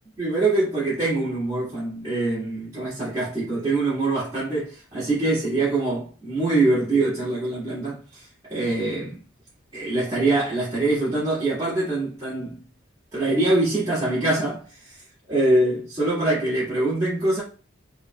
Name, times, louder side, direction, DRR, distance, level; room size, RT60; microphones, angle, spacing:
voice 1, 0.2-9.2 9.7-12.6 13.1-15.0 15.3-17.4, right 2 dB, 20° right, 2.3 m, -24 dB
5.3 x 3.9 x 2.3 m
head